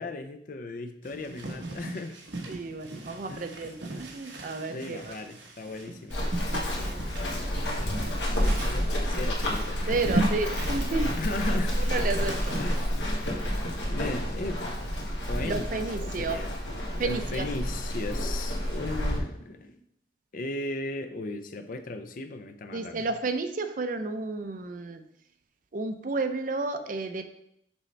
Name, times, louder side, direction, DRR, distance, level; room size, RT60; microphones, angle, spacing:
voice 1, 0.0-2.2 3.3-3.5 4.7-6.2 8.5-10.3 11.2-11.8 12.6-13.3 13.9-14.6 15.3-16.5 16.9-19.8 20.3-23.1, left 2 dB, 50° left, 8 dB, 0.5 m, -36 dB
sound 1, 1.0-12.8, right 2 dB, 80° right, 1.1 m, -37 dB
voice 2, 2.5-5.1 6.8-7.0 9.9-11.1 11.9-12.6 15.4-16.4 17.0-17.5 22.7-25.0 25.7-27.2, right 3 dB, 45° right, 8 dB, 0.5 m, -31 dB
Run, 6.1-19.2, equal, 70° left, 1.4 m, -29 dB
6.2 x 5.3 x 3.2 m, 0.74 s
head